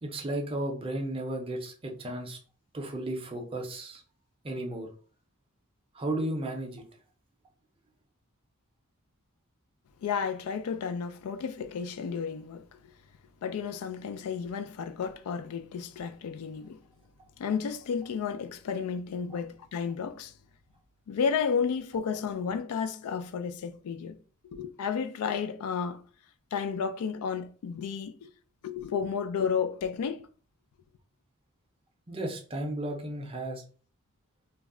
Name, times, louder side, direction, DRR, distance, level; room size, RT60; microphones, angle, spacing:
voice 1, 0.0-2.4 2.7-4.0 4.4-4.9 5.9-6.8 32.1-33.6, right 1 dB, 25° right, 0.5 m, -34 dB
voice 2, 10.0-12.7 13.4-16.8 17.4-20.3 21.1-24.2 24.4-26.0 26.5-28.3 28.6-30.3, left 6 dB, 80° left, 0.3 m, -32 dB
2.3 x 2.0 x 3.5 m
head